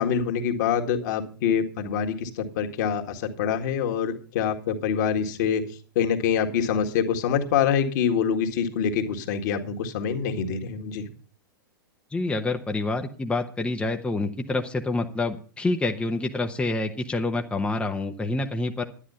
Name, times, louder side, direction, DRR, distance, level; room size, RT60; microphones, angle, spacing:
voice 1, 0.0-5.6 6.0-11.1, left 7 dB, 50° left, 4 dB, 1.9 m, -25 dB
voice 2, 12.1-18.8, left 2 dB, 10° left, 4 dB, 0.9 m, -27 dB
11.5 x 10.0 x 5.6 m, 0.40 s
figure-of-eight pair, 95°, 12 cm